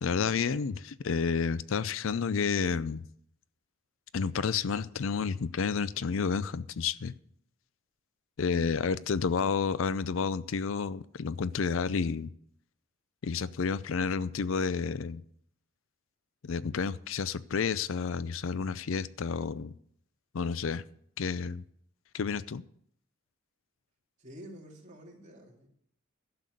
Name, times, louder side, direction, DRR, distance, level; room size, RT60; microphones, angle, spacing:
voice 1, 0.0-3.0 4.1-7.1 8.4-12.3 13.2-15.2 16.4-19.7 20.3-20.8 21.2-21.6 22.1-22.6, left 5 dB, 65° left, 17 dB, 0.5 m, -30 dB
voice 2, 24.2-25.7, equal, 35° right, 0 dB, 2.7 m, -49 dB
12.0 x 6.8 x 7.9 m, 0.66 s
head